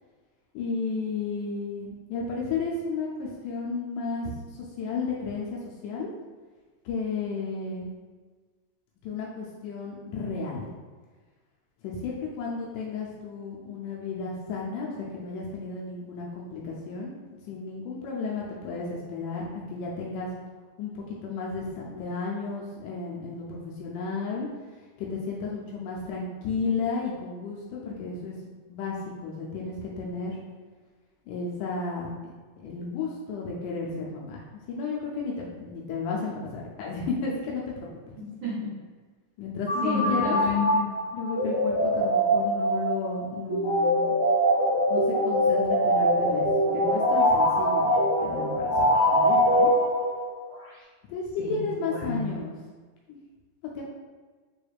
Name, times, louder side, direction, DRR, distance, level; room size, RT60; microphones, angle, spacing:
voice 1, 0.5-6.1 6.9-7.9 9.0-10.7 11.8-20.3 20.8-24.5 25.0-28.3 28.7-30.4 31.3-32.1 32.6-37.7 38.1-38.3 39.4-40.4 41.1-44.1 44.9-49.7 51.1-52.6 53.1-53.2 53.8-53.9, left 4 dB, 85° left, -3 dB, 2.1 m, -33 dB
voice 2, 38.4-38.7 39.8-40.9 51.4-51.5 51.8-52.3, left 4 dB, 75° right, -7 dB, 1.3 m, -30 dB
sound 1, 39.7-50.4, equal, 40° left, 1.3 m, -23 dB
5.0 x 3.3 x 2.3 m, 1.4 s
omnidirectional pair, 3.5 m